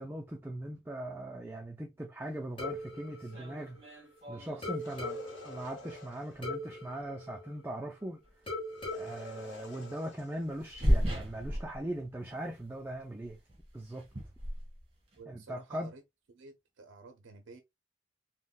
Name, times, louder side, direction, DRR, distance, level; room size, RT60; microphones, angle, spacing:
voice 1, 0.0-3.8 4.3-8.2 8.9-13.4 13.7-14.0 15.3-15.9, right 1 dB, 10° right, 0.3 m, -40 dB
sound 1, 2.6-4.2 4.6-8.0 8.5-10.4, left 2 dB, 25° left, 0.7 m, -41 dB
sound 2, 2.7-2.8 3.2-5.2 6.3-6.4 8.2-8.5 8.8-8.9 10.4-12.3 12.5-12.9 13.2-15.2, equal, 30° right, 1.3 m, -34 dB
sound 3, 4.7-6.5 8.7-11.4, left 2 dB, 75° left, 0.9 m, -52 dB
voice 2, 15.2-16.0 16.3-17.6, right 3 dB, 85° right, 0.4 m, -51 dB
3.6 x 2.1 x 2.3 m
head